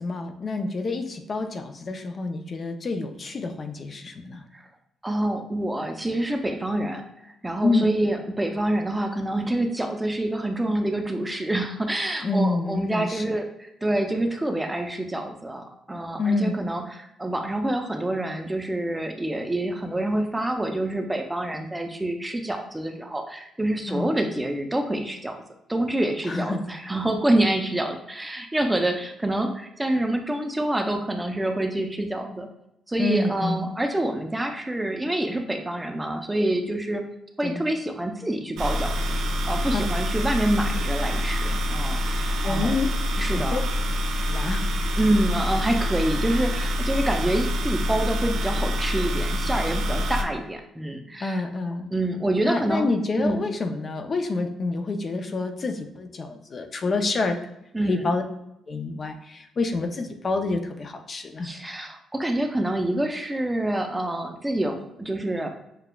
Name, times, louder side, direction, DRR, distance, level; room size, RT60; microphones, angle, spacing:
voice 1, 0.0-4.4 7.6-7.8 12.2-13.2 16.2-16.6 23.9-24.1 26.3-26.6 33.0-33.7 37.4-37.6 42.4-42.9 43.3-43.6 44.3-44.7 51.2-51.9 52.4-57.4 57.9-58.2 58.7-61.5, left 3 dB, 40° left, 6 dB, 0.5 m, -27 dB
voice 2, 5.0-7.0 7.4-13.5 13.8-25.3 25.7-32.5 32.9-37.0 37.4-38.9 39.5-42.7 43.2-43.6 45.0-51.4 51.9-52.9 53.2-53.5 57.7-58.1 61.4-65.5, right 1 dB, 10° right, 4 dB, 0.6 m, -27 dB
sound 1, 38.6-50.2, left 1 dB, 80° right, 0.5 m, -26 dB
6.7 x 2.3 x 2.2 m, 0.83 s
cardioid pair, 90°, 0 cm